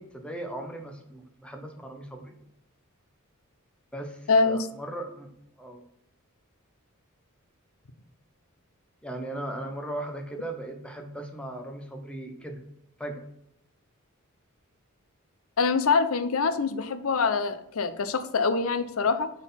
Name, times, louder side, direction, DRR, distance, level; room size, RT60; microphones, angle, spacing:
voice 1, 0.0-2.3 3.9-5.3 5.6-5.8 9.0-12.6 13.0-13.2, right 1 dB, 5° left, 4 dB, 0.9 m, -38 dB
voice 2, 4.3-4.7 15.6-19.3, left 4 dB, 75° left, 12 dB, 0.6 m, -24 dB
6.1 x 4.0 x 5.6 m, 0.77 s
head